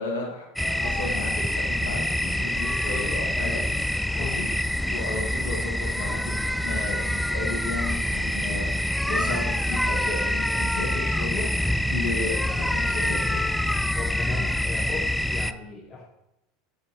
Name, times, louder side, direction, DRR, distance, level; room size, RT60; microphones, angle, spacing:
voice 1, 0.0-3.6 3.9-4.5 4.9-13.4, left 3 dB, 80° left, -1 dB, 2.5 m, -34 dB
sound 1, 0.6-15.5, left 1 dB, 5° left, 0.4 m, -26 dB
voice 2, 13.9-16.1, left 3 dB, 35° left, 1 dB, 1.2 m, -37 dB
9.5 x 4.3 x 4.6 m, 0.90 s
hypercardioid pair, 80°, 0 cm